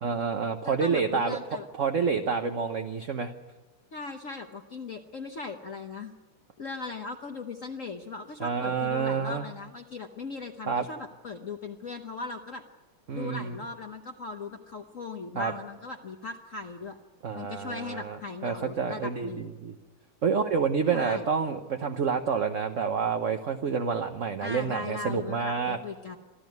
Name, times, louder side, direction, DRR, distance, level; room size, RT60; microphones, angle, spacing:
voice 1, 0.0-1.4 1.8-3.3 8.4-9.4 10.7-10.9 13.1-13.5 15.3-15.5 17.2-18.2 18.4-19.7 20.2-25.8, right 6 dB, 50° right, 6 dB, 1.0 m, -28 dB
voice 2, 0.6-1.7 3.9-6.1 6.6-12.6 13.1-17.0 17.3-19.5 20.9-21.3 24.4-26.2, left 4 dB, 45° left, 5 dB, 1.1 m, -38 dB
25.0 x 14.0 x 9.4 m, 1.2 s
omnidirectional pair, 2.3 m